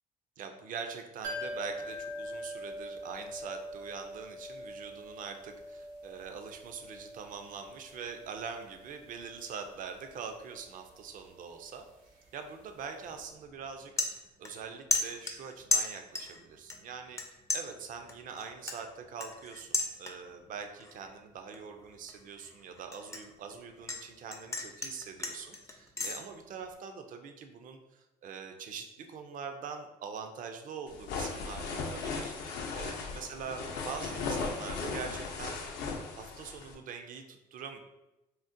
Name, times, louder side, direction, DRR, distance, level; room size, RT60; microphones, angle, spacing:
voice 1, 0.4-11.8 12.3-17.2 17.5-35.8 36.2-37.8, right 6 dB, 55° right, 6 dB, 0.4 m, -43 dB
sound 1, 1.2-12.9 13.1-13.2, equal, 75° right, 1.1 m, -45 dB
sound 2, 13.0-13.3 13.6-14.6 14.9-16.4 16.7-17.2 17.5-20.4 20.8-21.1 21.5-24.0 24.3-26.2, left 2 dB, 20° left, 0.3 m, -34 dB
sound 3, 30.9-36.8, left 4 dB, 80° left, 0.5 m, -37 dB
3.7 x 2.1 x 2.6 m, 0.98 s
cardioid pair, 110°, 17 cm